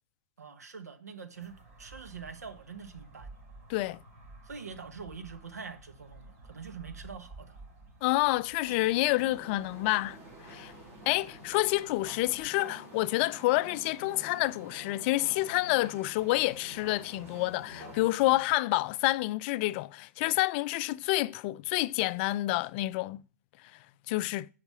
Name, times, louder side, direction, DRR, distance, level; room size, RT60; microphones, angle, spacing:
voice 1, 0.4-3.3 4.4-7.6, right 5 dB, 80° right, 1.2 m, -44 dB
sound 1, 1.3-12.5, right 2 dB, 55° right, 4.1 m, -53 dB
voice 2, 3.7-4.0 8.0-10.2 10.5-10.7 11.1-23.2 24.1-24.5, left 19 dB, 40° left, 0.4 m, -28 dB
sound 2, 8.6-18.4, equal, 30° right, 5.0 m, -48 dB
8.0 x 5.8 x 4.7 m
hypercardioid pair, 110°, 9 cm